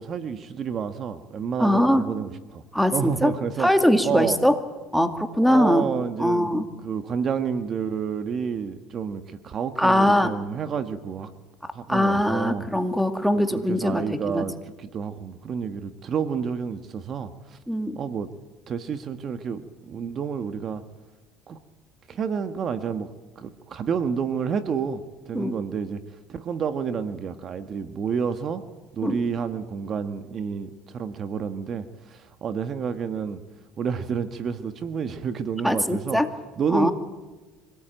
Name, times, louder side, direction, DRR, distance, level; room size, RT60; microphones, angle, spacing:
voice 1, 0.0-2.6 2.9-3.7 4.0-4.4 5.4-6.6 6.8-11.3 11.7-12.7 13.5-17.6 17.9-18.3 18.7-20.8 21.5-21.6 22.1-23.1 23.3-26.0 26.3-28.6 28.9-33.4 33.8-36.2 36.6-36.9, right 6 dB, 40° right, 10 dB, 1.4 m, -29 dB
voice 2, 1.6-2.1 2.7-3.3 3.6-4.6 4.9-5.9 6.2-6.7 9.8-10.3 11.9-14.5 17.7-18.0 25.3-25.5 29.0-29.2 35.6-36.3 36.7-36.9, left 1 dB, ahead, 7 dB, 2.2 m, -21 dB
25.0 x 18.5 x 9.0 m, 1.2 s
supercardioid pair, 110°, 0 cm